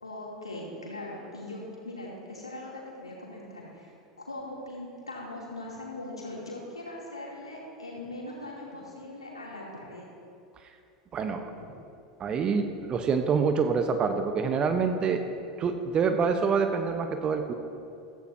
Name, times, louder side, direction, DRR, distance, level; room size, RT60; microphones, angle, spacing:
voice 1, 0.0-3.9 4.3-10.1 11.5-11.7 15.3-15.4, left 1 dB, 90° left, -4 dB, 2.8 m, -40 dB
voice 2, 11.1-11.4 12.2-15.2 15.6-17.5, right 5 dB, 30° right, 7 dB, 0.9 m, -26 dB
15.0 x 15.0 x 2.8 m, 2.6 s
figure-of-eight pair, 85°, 3 cm